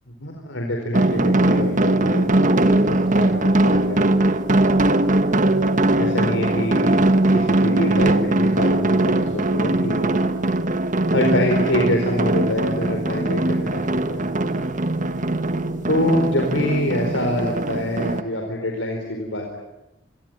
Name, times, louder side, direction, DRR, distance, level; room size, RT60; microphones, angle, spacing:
voice 1, 0.2-4.3 6.0-6.9 7.3-10.1 11.1-14.2 15.9-19.6, left 1 dB, 80° left, 2 dB, 4.5 m, -25 dB
sound 1, 0.9-18.2, right 1 dB, 45° right, 1.5 m, -20 dB
27.0 x 22.0 x 9.3 m, 0.94 s
head